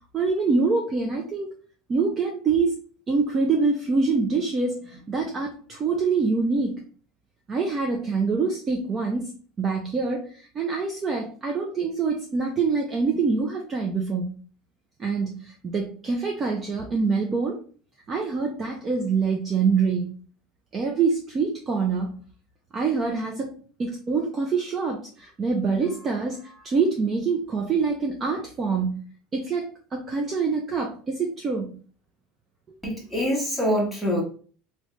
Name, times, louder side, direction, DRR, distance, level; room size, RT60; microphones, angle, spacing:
voice 1, 0.1-1.5 1.9-2.8 3.1-6.8 7.5-9.3 9.6-14.4 15.0-17.6 18.1-20.2 20.7-22.2 22.7-23.5 23.8-29.0 29.3-31.7, right 4 dB, 20° right, 2 dB, 0.4 m, -25 dB
voice 2, 32.8-34.2, equal, 5° right, -2 dB, 1.0 m, -25 dB
3.1 x 2.8 x 3.1 m, 0.41 s
cardioid pair, 160°, 0 cm